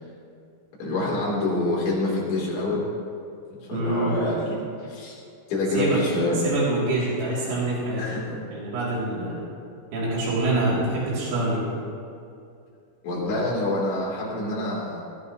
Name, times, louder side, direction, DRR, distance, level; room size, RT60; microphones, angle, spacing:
voice 1, 0.8-2.9 3.7-5.2 5.5-6.4 8.0-8.4 13.0-15.0, left 2 dB, 70° left, -5 dB, 5.9 m, -27 dB
voice 2, 3.7-4.2 5.7-6.0 6.4-8.0 8.5-9.4 9.9-11.6, right 2 dB, 85° right, -7 dB, 5.7 m, -25 dB
18.5 x 16.0 x 3.2 m, 2.5 s
omnidirectional pair, 5.4 m